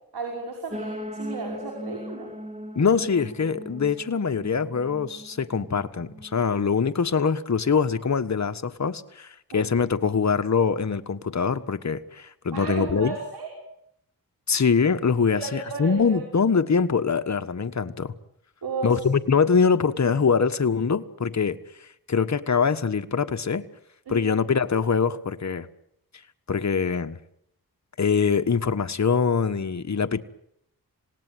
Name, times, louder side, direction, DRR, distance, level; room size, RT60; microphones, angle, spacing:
voice 1, 0.1-2.3 9.5-9.6 12.5-13.5 15.3-16.2 18.6-19.0 24.1-24.4, right 3 dB, 85° right, 1 dB, 5.6 m, -34 dB
sound 1, 0.7-6.6, equal, 20° right, 3.5 m, -39 dB
voice 2, 2.7-13.2 14.5-18.1 18.8-21.6 22.1-23.7 24.1-25.7 26.5-27.2 28.0-30.2, left 5 dB, 50° left, 9 dB, 1.4 m, -23 dB
27.5 x 18.0 x 9.4 m, 0.76 s
cardioid pair, 60°, 37 cm